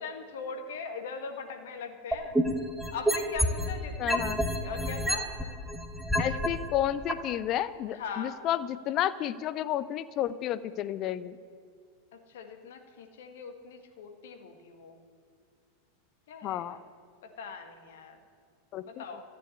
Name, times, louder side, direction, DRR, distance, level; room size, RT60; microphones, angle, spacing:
voice 1, 0.0-2.4 2.9-4.3 4.6-5.5 7.9-8.4 12.1-15.0 16.3-16.8 17.4-18.2 18.8-19.2, left 5 dB, 60° left, 5 dB, 1.6 m, -41 dB
sound 1, 2.1-3.7 4.1-6.5 7.1-7.2, equal, 5° right, 1.3 m, -27 dB
voice 2, 4.0-4.4 6.2-11.4 16.4-16.8 18.7-19.0, left 11 dB, 35° left, 16 dB, 0.4 m, -31 dB
14.0 x 7.0 x 9.9 m, 2.1 s
figure-of-eight pair, 90°, 0 cm